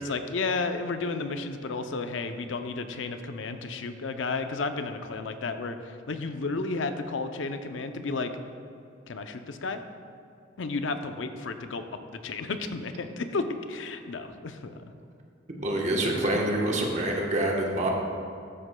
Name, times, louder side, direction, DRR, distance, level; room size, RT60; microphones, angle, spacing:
voice 1, 0.0-8.3 9.1-9.8 10.6-11.8 12.2-14.7, left 3 dB, 75° left, 8 dB, 0.6 m, -32 dB
voice 2, 15.6-17.9, right 1 dB, 40° right, -1 dB, 1.2 m, -26 dB
12.5 x 7.9 x 2.2 m, 2.6 s
head